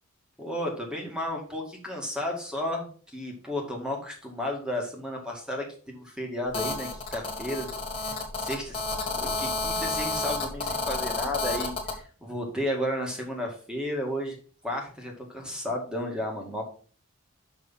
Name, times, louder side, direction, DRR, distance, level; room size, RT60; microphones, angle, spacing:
voice 1, 0.4-7.7 8.0-14.4 14.6-16.6, left 1 dB, 5° right, 0 dB, 1.9 m, -33 dB
Telephone, 6.5-12.0, left 3 dB, 25° left, 1.7 m, -30 dB
6.3 x 5.8 x 5.6 m, 0.43 s
head